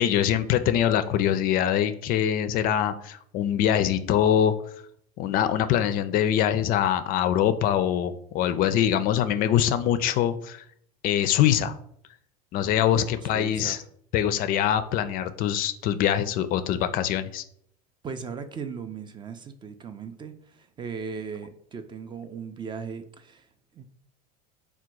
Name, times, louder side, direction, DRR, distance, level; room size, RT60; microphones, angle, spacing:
voice 1, 0.0-4.5 5.2-10.7 11.0-11.8 12.5-13.8 14.1-17.4, left 10 dB, 45° left, 0.4 m, -23 dB
voice 2, 12.9-13.8 18.0-23.9, right 5 dB, 25° right, 0.4 m, -38 dB
3.6 x 2.2 x 4.4 m
hypercardioid pair, 95°, 20 cm